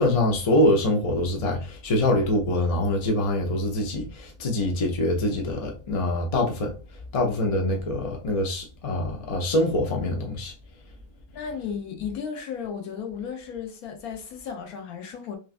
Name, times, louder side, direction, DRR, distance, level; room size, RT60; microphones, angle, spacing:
voice 1, 0.0-6.7 7.1-10.5, left 1 dB, 45° left, 0.5 m, -24 dB
voice 2, 11.3-15.4, left 7 dB, 90° left, 1.2 m, -34 dB
3.1 x 2.3 x 2.4 m
omnidirectional pair, 1.5 m